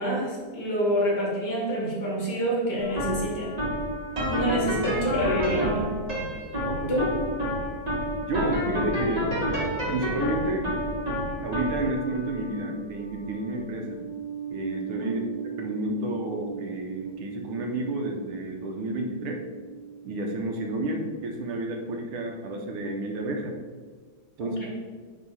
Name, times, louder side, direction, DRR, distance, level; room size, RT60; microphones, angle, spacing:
voice 1, 0.0-3.6 4.3-5.9 6.9-7.1 15.0-15.2 24.4-24.7, equal, 50° left, -3 dB, 2.2 m, -27 dB
sound 1, 2.8-20.0, equal, 20° right, 1.3 m, -31 dB
voice 2, 6.6-7.0 8.2-9.3 9.9-10.7 11.4-14.0 14.5-15.2 15.6-19.5 20.0-23.6 24.4-24.7, right 2 dB, 80° right, 3 dB, 1.8 m, -31 dB
10.0 x 3.6 x 4.1 m, 1.5 s
omnidirectional pair, 2.4 m